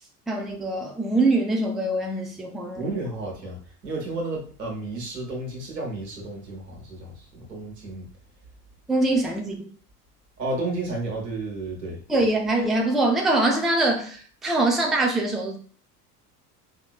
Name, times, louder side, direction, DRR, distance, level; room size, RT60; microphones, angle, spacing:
voice 1, 0.3-2.9 8.9-9.7 12.1-15.6, right 2 dB, ahead, 0.5 m, -23 dB
voice 2, 2.7-3.6 3.8-8.0 10.4-12.0, right 2 dB, 85° right, 1.4 m, -32 dB
4.5 x 2.8 x 2.4 m
figure-of-eight pair, 70°, 48 cm